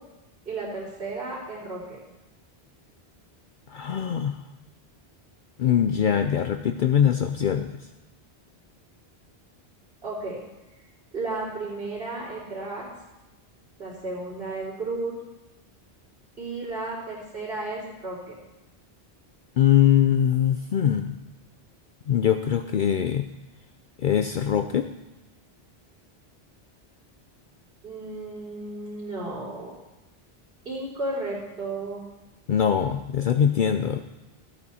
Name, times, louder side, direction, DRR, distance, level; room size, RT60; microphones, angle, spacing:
voice 1, 0.5-2.0 10.0-10.4 11.1-12.8 13.8-15.1 16.4-18.4 27.8-29.7 30.7-32.0, right 2 dB, 70° right, -12 dB, 3.6 m, -33 dB
voice 2, 3.7-4.4 5.6-7.8 19.6-21.2 22.1-23.3 24.0-24.9 32.5-34.0, left 9 dB, 60° left, 7 dB, 0.6 m, -22 dB
14.0 x 8.6 x 4.3 m, 1.0 s
omnidirectional pair, 1.1 m